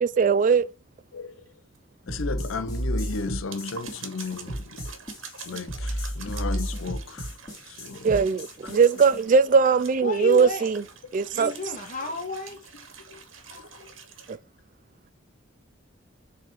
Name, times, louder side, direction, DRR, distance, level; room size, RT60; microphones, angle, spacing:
voice 1, 0.0-0.7 8.0-10.8 11.1-11.5 14.3-14.4, right 5 dB, 40° right, 0.3 m, -20 dB
voice 2, 1.1-1.5 2.0-5.0 5.4-8.1 8.6-9.1 9.7-9.8 12.0-12.2 13.0-13.2 13.5-14.0, left 4 dB, 85° left, 0.7 m, -35 dB
sound 1, 1.7-1.8 2.2-2.3 2.6-2.7 3.3-14.4, right 6 dB, 80° right, 1.6 m, -46 dB
sound 2, 2.1-9.2, equal, 20° left, 2.3 m, -32 dB
voice 3, 10.0-10.8 11.3-12.7, left 3 dB, 40° left, 1.8 m, -32 dB
6.5 x 4.2 x 4.5 m
head